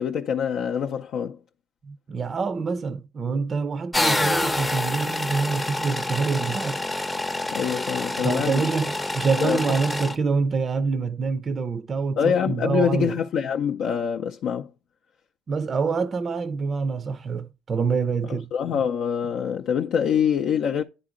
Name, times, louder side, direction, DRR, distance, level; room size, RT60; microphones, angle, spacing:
voice 1, 0.0-1.4 7.5-8.7 9.4-9.6 12.2-14.7 18.3-20.8, left 8 dB, 60° left, 0.5 m, -25 dB
voice 2, 1.8-6.8 8.2-13.2 15.5-18.5, right 4 dB, 35° right, 0.5 m, -26 dB
sound 1, 3.9-10.2, left 2 dB, 10° left, 0.6 m, -27 dB
10.0 x 3.8 x 3.7 m
supercardioid pair, 90°, 0 cm